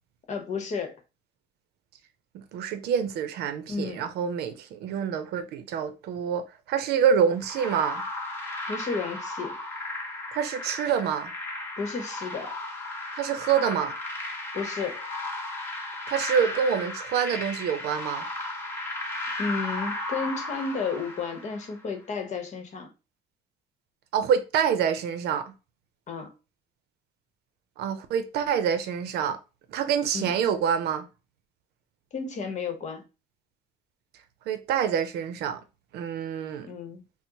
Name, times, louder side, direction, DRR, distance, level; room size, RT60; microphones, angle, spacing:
voice 1, 0.3-1.0 3.7-4.0 8.7-9.6 11.8-12.5 14.5-15.0 19.4-22.9 26.1-26.3 30.1-30.3 32.1-33.0 36.6-37.0, left 4 dB, 45° left, 0.9 m, -32 dB
voice 2, 2.3-8.0 10.3-11.3 13.2-13.9 16.1-18.2 24.1-25.5 27.8-29.4 29.7-31.1 34.5-35.6 35.9-36.7, right 7 dB, 75° right, 0.6 m, -26 dB
sound 1, 7.4-21.8, left 2 dB, 15° left, 1.0 m, -35 dB
4.3 x 2.0 x 2.9 m
cardioid pair, 110°, 17 cm